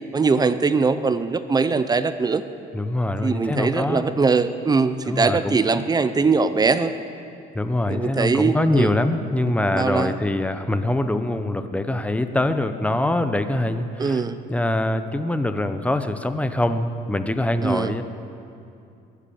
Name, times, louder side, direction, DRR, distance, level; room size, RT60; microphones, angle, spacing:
voice 1, 0.1-2.4 3.2-6.9 7.9-8.9 9.7-10.2 14.0-14.4 17.6-17.9, right 4 dB, 25° right, 12 dB, 0.6 m, -21 dB
voice 2, 2.7-4.0 5.1-5.8 7.5-14.2 14.5-18.0, left 1 dB, 10° left, 9 dB, 0.8 m, -24 dB
22.0 x 8.4 x 7.1 m, 2.6 s
cardioid pair, 110°, 17 cm